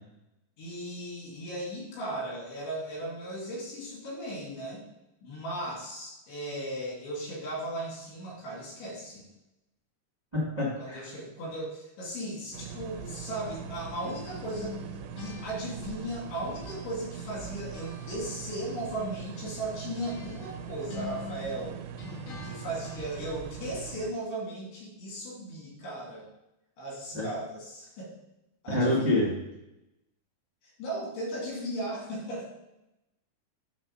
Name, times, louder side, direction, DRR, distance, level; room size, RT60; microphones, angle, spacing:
voice 1, 0.6-4.9 5.2-9.3 10.8-14.8 15.2-21.8 22.4-26.3 26.8-28.1 28.6-29.3 30.8-32.5, right 1 dB, 80° left, -3 dB, 4.7 m, -36 dB
voice 2, 10.3-11.0 27.1-27.2 28.7-29.3, left 1 dB, 25° right, -7 dB, 0.9 m, -26 dB
sound 1, 12.5-24.1, right 9 dB, 80° right, 2.2 m, -42 dB
sound 2, 13.4-16.9 17.2-23.6, left 5 dB, 50° left, 1.7 m, -46 dB
9.7 x 3.5 x 6.4 m, 0.91 s
omnidirectional pair, 4.9 m